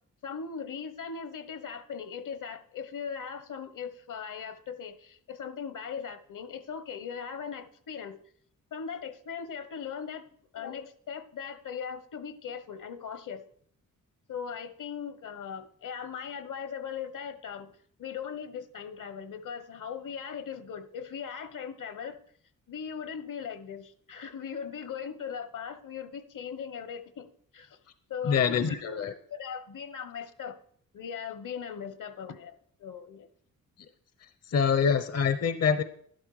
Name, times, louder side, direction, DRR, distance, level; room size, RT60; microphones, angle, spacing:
voice 1, 0.2-8.2 8.7-10.2 10.5-13.4 14.3-22.2 22.7-27.3 27.5-27.8 28.1-28.8 29.3-30.6 30.9-33.3, left 7 dB, 65° left, 12 dB, 1.2 m, -39 dB
voice 2, 28.2-29.1 34.2-35.8, left 6 dB, 45° left, 10 dB, 0.8 m, -26 dB
12.0 x 11.5 x 4.9 m, 0.63 s
cardioid pair, 85°, 34 cm